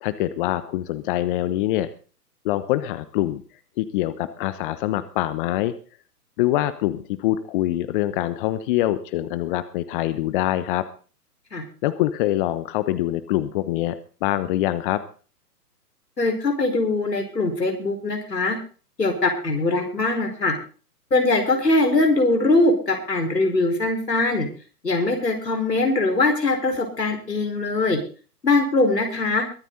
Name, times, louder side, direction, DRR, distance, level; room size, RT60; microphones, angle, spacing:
voice 1, 0.0-1.9 2.4-3.4 3.8-5.7 6.4-10.8 11.8-14.0 14.2-15.0, left 14 dB, 35° left, 14 dB, 1.0 m, -24 dB
voice 2, 16.2-18.6 19.0-20.6 21.1-24.5 24.8-28.0 28.4-29.4, left 2 dB, 90° left, 3 dB, 5.0 m, -21 dB
22.5 x 9.2 x 4.1 m, 0.38 s
figure-of-eight pair, 120°, 47 cm